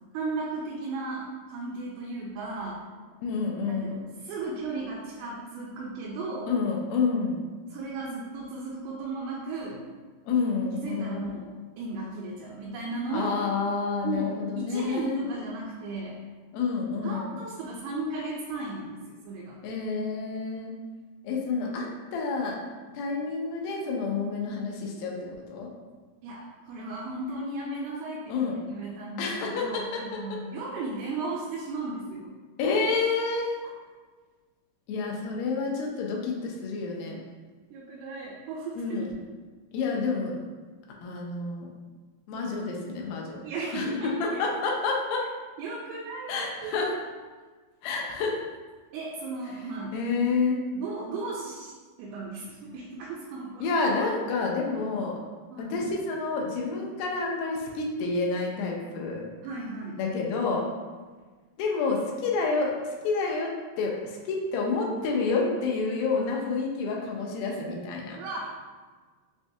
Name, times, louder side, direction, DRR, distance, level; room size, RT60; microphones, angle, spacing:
voice 1, 0.1-2.8 3.7-6.5 7.7-9.8 10.7-13.4 14.0-16.2 17.0-19.6 21.6-21.8 26.2-32.3 37.7-39.1 43.4-44.4 45.6-47.0 48.9-50.0 50.7-51.7 52.0-53.7 55.5-55.8 59.4-60.0 68.2-68.6, right 3 dB, 85° right, -4 dB, 2.6 m, -35 dB
voice 2, 3.2-4.0 6.5-7.4 10.2-11.3 13.1-15.2 16.5-17.5 19.6-20.7 21.2-22.6 22.9-25.7 28.3-28.6 29.2-30.4 32.6-33.6 34.9-37.2 38.8-39.1 39.7-40.4 41.0-41.7 42.3-43.4 43.7-45.2 46.3-46.9 47.8-48.4 49.9-50.6 53.6-55.2 55.6-59.2 60.0-60.7 61.6-68.2, left 4 dB, 80° left, -1 dB, 2.2 m, -29 dB
6.0 x 2.2 x 2.7 m, 1.4 s
omnidirectional pair, 4.5 m